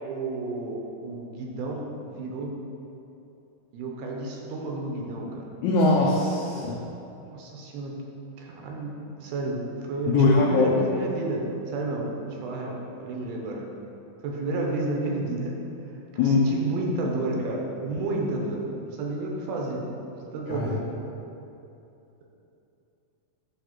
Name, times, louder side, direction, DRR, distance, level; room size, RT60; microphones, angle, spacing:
voice 1, 0.0-2.5 3.7-5.5 7.2-8.0 8.4-8.9 9.2-13.7 14.2-15.5 16.1-19.9 20.2-20.8, right 2 dB, 90° right, -1 dB, 2.8 m, -31 dB
voice 2, 5.6-6.8 10.1-10.7 16.2-16.5 20.5-20.7, left 3 dB, 80° left, -3 dB, 1.7 m, -21 dB
7.7 x 3.5 x 5.8 m, 2.8 s
omnidirectional pair, 4.2 m